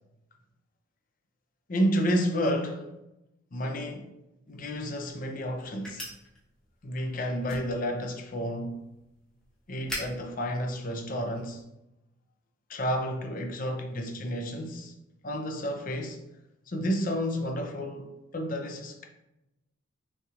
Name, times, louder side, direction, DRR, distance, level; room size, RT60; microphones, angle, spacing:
voice 1, 1.7-2.9 3.5-4.1 4.5-6.1 6.8-8.8 9.7-11.6 12.7-14.9 15.2-16.2 16.7-19.1, equal, 40° left, 0.5 m, -31 dB
sound 1, 4.5-11.6, left 1 dB, 5° left, 0.9 m, -45 dB
5.4 x 3.3 x 2.4 m
head